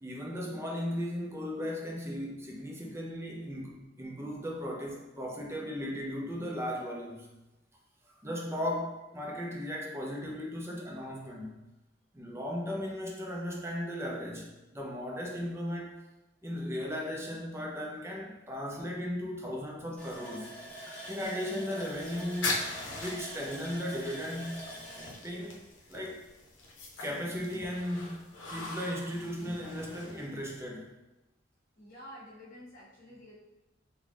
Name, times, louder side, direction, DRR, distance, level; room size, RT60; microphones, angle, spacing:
voice 1, 0.0-7.3 8.2-11.6 12.1-16.0 16.4-20.6 21.1-22.7 23.0-24.7 25.2-25.6 25.9-26.2 27.0-30.9, equal, 15° right, -2 dB, 0.6 m, -36 dB
Water tap faucet, 20.0-26.5 26.8-26.9 27.3-27.5, equal, 5° left, 0.9 m, -45 dB
sound 1, 21.9-30.6, left 2 dB, 85° left, 0.7 m, -41 dB
voice 2, 31.7-33.3, equal, 50° left, -6 dB, 1.2 m, -49 dB
3.7 x 2.2 x 3.3 m, 1.0 s
head